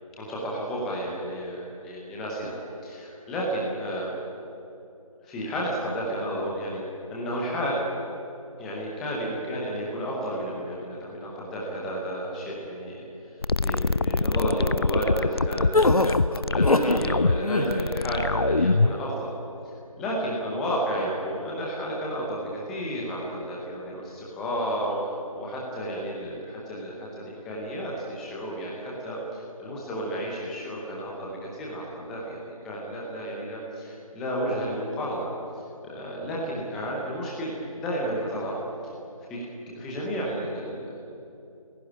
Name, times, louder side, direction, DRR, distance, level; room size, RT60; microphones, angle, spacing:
voice 1, 0.2-4.1 5.2-6.8 7.1-7.8 8.6-13.0 13.6-16.1 16.5-19.3 20.0-35.3 35.8-38.6 39.3-39.4 39.7-41.0, equal, ahead, -4 dB, 0.7 m, -31 dB
sound 1, 13.4-19.0, left 3 dB, 45° left, 0.5 m, -24 dB
sound 2, 15.7-17.1 17.4-17.9, left 2 dB, 80° left, 1.9 m, -22 dB
29.0 x 17.0 x 10.0 m, 2.8 s
figure-of-eight pair, 165°, 19 cm